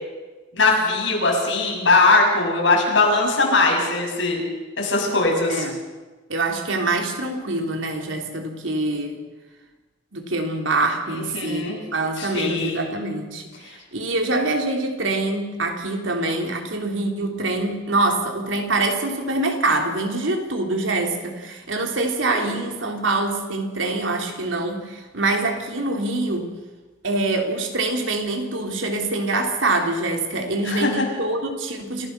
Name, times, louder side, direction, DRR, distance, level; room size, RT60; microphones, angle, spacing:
voice 1, 0.5-4.4 4.8-5.6 11.1-11.8 12.2-12.8 22.3-22.5 30.6-30.9, left 3 dB, 80° left, -1 dB, 7.0 m, -20 dB
voice 2, 6.3-9.2 10.1-26.5 27.0-32.1, right 2 dB, 90° right, 3 dB, 3.3 m, -25 dB
28.5 x 15.5 x 6.8 m, 1.2 s
head